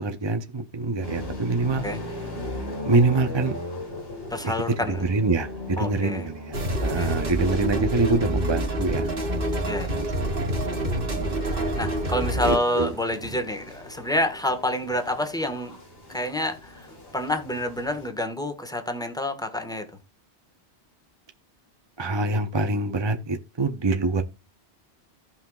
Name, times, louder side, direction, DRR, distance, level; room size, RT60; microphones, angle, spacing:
voice 1, 0.0-1.8 2.8-3.6 5.0-9.2 9.9-10.1 10.4-11.4 12.4-12.9 22.0-24.2, right 3 dB, 30° right, 0.6 m, -25 dB
sound 1, 1.0-18.1, left 1 dB, 60° left, 3.1 m, -39 dB
voice 2, 4.3-5.0 5.8-6.3 7.0-7.1 9.6-10.0 11.8-15.8 16.1-19.8, left 1 dB, 5° left, 1.3 m, -28 dB
sound 2, 6.5-12.6, right 1 dB, 55° right, 1.9 m, -27 dB
16.5 x 5.7 x 2.3 m
omnidirectional pair, 1.2 m